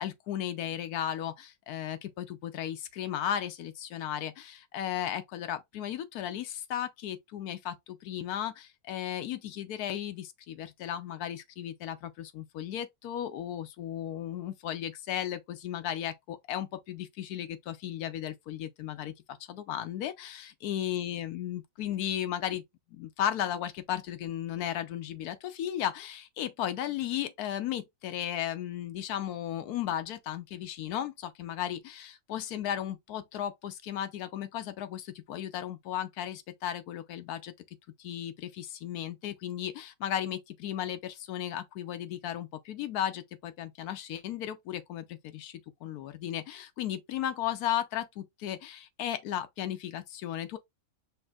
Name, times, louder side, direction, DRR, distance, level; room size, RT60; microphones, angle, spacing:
voice 1, 0.0-22.6 22.9-37.5 38.0-50.6, left 11 dB, 80° left, 1.2 m, -35 dB
5.3 x 2.1 x 3.6 m
omnidirectional pair, 1.6 m